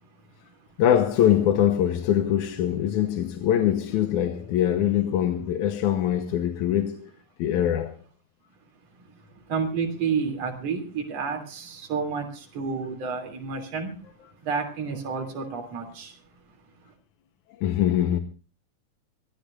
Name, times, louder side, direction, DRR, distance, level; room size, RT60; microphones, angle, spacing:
voice 1, 0.8-7.1 7.4-7.9 17.6-18.2, left 10 dB, 75° left, 2.4 m, -23 dB
voice 2, 8.9-14.1 14.4-16.6 16.8-16.9, right 5 dB, 55° right, 4.1 m, -31 dB
24.5 x 15.0 x 2.5 m
omnidirectional pair, 3.6 m